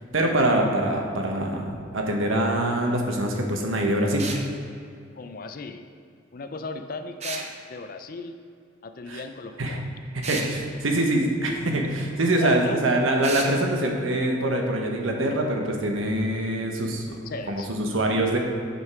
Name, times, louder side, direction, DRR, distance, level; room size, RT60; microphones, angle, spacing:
voice 1, 0.1-4.3 9.1-9.2 9.6-9.8 10.1-17.2 17.5-18.4, right 1 dB, 85° right, 2 dB, 1.1 m, -24 dB
sound 1, 4.2-4.5 7.2-7.5 10.2-10.5 13.2-13.5, right 4 dB, 35° right, 0.7 m, -32 dB
voice 2, 5.2-5.9 6.3-8.4 8.8-9.9 12.4-12.8 17.3-17.7, left 3 dB, 45° left, 8 dB, 0.4 m, -36 dB
8.1 x 5.3 x 4.8 m, 2.4 s
head